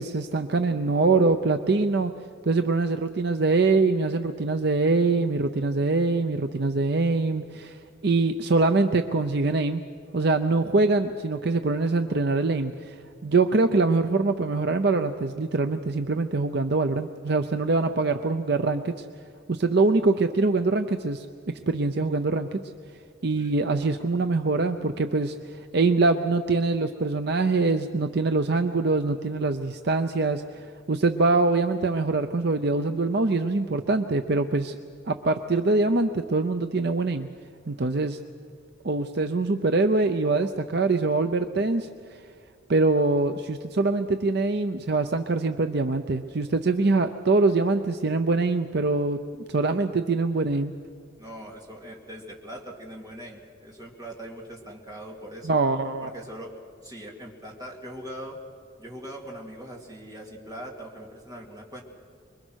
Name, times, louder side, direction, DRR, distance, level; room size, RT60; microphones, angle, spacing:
voice 1, 0.0-2.1 2.4-7.8 8.0-9.8 10.1-12.9 13.2-19.0 19.5-21.3 21.7-22.6 23.2-25.4 25.7-34.8 35.1-37.3 37.7-38.2 38.8-41.9 42.7-50.7 55.4-56.1, right 3 dB, 55° right, 7 dB, 0.6 m, -24 dB
voice 2, 51.2-55.5 56.0-56.5 56.8-58.4 58.8-61.8, right 1 dB, 20° right, -2 dB, 2.8 m, -41 dB
25.0 x 22.5 x 6.4 m, 2.3 s
head